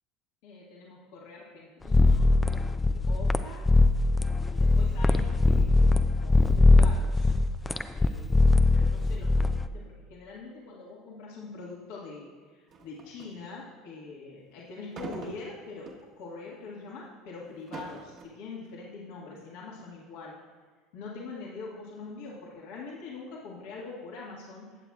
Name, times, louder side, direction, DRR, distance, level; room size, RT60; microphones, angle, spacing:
voice 1, 0.4-3.7 4.4-7.3 7.9-15.9 16.2-20.4 20.9-24.8, left 4 dB, 70° left, -4 dB, 1.7 m, -44 dB
sound 1, 1.9-9.7, left 3 dB, 15° left, 0.4 m, -21 dB
sound 2, 12.7-13.4 14.9-16.1 16.6-16.8 17.5-18.2, right 4 dB, 50° right, 1.3 m, -42 dB
17.0 x 7.2 x 2.4 m, 1.4 s
hypercardioid pair, 85°, 0 cm